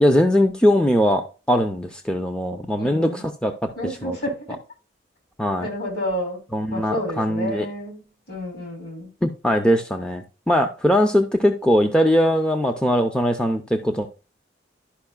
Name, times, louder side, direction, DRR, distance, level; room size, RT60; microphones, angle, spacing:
voice 1, 0.0-4.2 5.4-5.7 6.5-7.7 9.2-14.1, equal, 5° left, 5 dB, 0.5 m, -21 dB
voice 2, 2.7-3.2 3.8-4.6 5.6-6.4 6.7-8.0 8.3-9.1, equal, 60° left, 1 dB, 3.0 m, -30 dB
11.5 x 5.3 x 2.3 m, 0.34 s
head